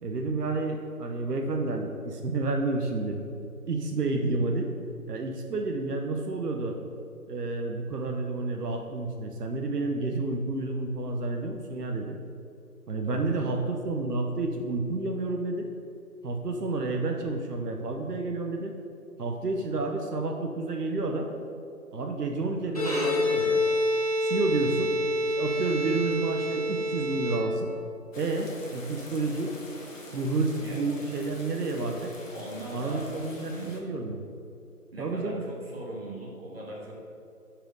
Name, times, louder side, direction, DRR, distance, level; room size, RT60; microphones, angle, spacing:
voice 1, 0.0-3.2 3.7-4.7 5.1-6.8 7.3-12.2 12.9-15.7 16.2-18.7 19.2-21.3 21.9-23.6 24.2-24.9 25.2-27.7 28.1-29.5 30.1-32.1 32.7-34.2 35.0-35.4, right 3 dB, 85° right, 3 dB, 0.9 m, -30 dB
voice 2, 13.0-13.6 30.6-30.8 32.3-33.9 34.9-36.9, right 1 dB, 40° right, -3 dB, 1.6 m, -40 dB
Bowed string instrument, 22.7-27.9, left 1 dB, 25° left, 0.8 m, -27 dB
sound 1, 28.1-33.8, left 1 dB, 55° left, 1.2 m, -45 dB
6.1 x 4.9 x 5.3 m, 2.6 s
figure-of-eight pair, 170°, 46 cm